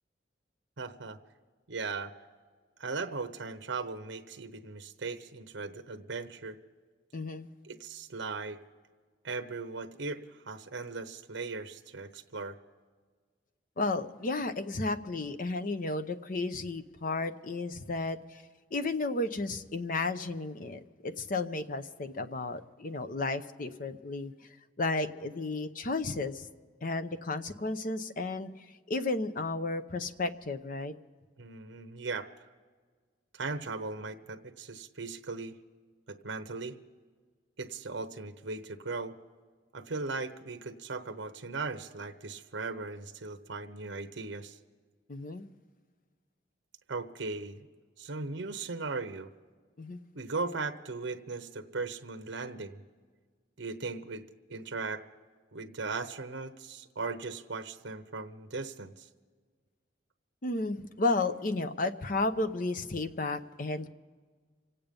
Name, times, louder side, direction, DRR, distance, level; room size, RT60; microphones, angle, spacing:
voice 1, 0.8-1.2 1.7-2.1 2.8-6.6 7.6-8.6 9.2-12.6 31.4-32.3 33.3-35.6 36.1-36.8 37.6-39.1 39.7-44.6 46.9-47.7 48.0-49.3 50.1-52.8 53.6-54.2 54.5-55.0 55.5-59.1, right 3 dB, 75° right, 7 dB, 0.9 m, -38 dB
voice 2, 7.1-7.5 13.8-18.4 18.7-24.3 24.8-26.5 26.8-28.5 28.9-30.9 45.1-45.5 49.8-50.0 60.4-63.9, left 2 dB, 45° left, 10 dB, 0.8 m, -33 dB
26.5 x 8.9 x 5.3 m, 1.5 s
head